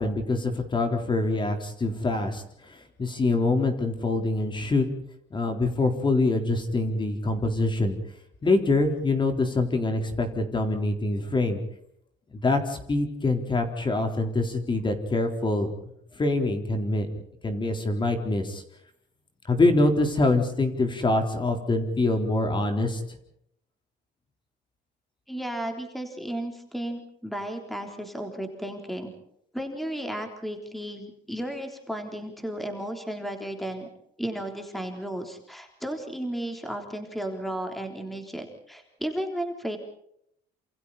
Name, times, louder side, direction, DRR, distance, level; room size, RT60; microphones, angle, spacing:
voice 1, 0.0-4.8 5.3-8.0 8.4-11.6 12.4-15.7 16.2-18.6 19.5-23.0, left 2 dB, 25° left, 5 dB, 4.1 m, -25 dB
voice 2, 25.3-29.1 29.5-33.9 34.2-39.8, right 1 dB, ahead, 4 dB, 3.7 m, -34 dB
28.5 x 27.5 x 4.3 m, 0.73 s
cardioid pair, 115°, 18 cm